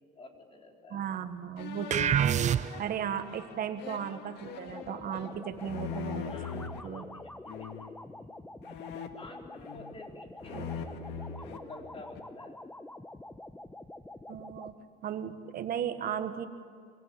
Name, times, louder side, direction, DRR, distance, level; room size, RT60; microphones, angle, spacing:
voice 1, 0.1-1.0 6.2-8.4 9.2-12.6, left 2 dB, 35° left, 1 dB, 4.4 m, -51 dB
voice 2, 0.9-2.3 2.8-7.0 10.5-10.7 14.3-16.5, right 8 dB, 60° right, 9 dB, 1.5 m, -36 dB
sound 1, 1.6-6.8 7.5-8.0 8.6-10.1 10.4-12.4, left 7 dB, 85° left, 2.1 m, -42 dB
sound 2, 1.9-3.1, right 9 dB, 45° right, 0.7 m, -26 dB
sound 3, 4.7-14.7, left 1 dB, 10° left, 1.0 m, -47 dB
26.5 x 24.0 x 8.8 m, 2.1 s
cardioid pair, 110°, 17 cm